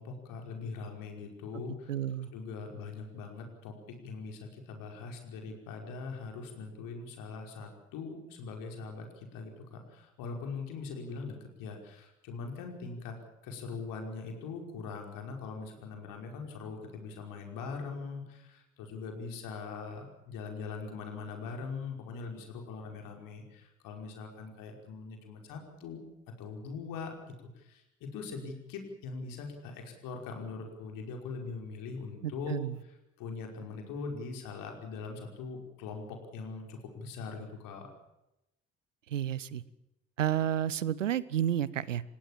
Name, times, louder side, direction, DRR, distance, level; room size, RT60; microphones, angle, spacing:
voice 1, 0.0-1.9 2.3-13.2 13.4-26.0 26.4-32.6 33.2-37.9, left 4 dB, 60° left, 3 dB, 5.4 m, -41 dB
voice 2, 1.9-2.3 32.2-32.8 39.1-39.6 40.2-42.0, right 10 dB, 80° right, 21 dB, 0.9 m, -31 dB
29.0 x 16.5 x 7.5 m, 0.91 s
figure-of-eight pair, 50°, 38 cm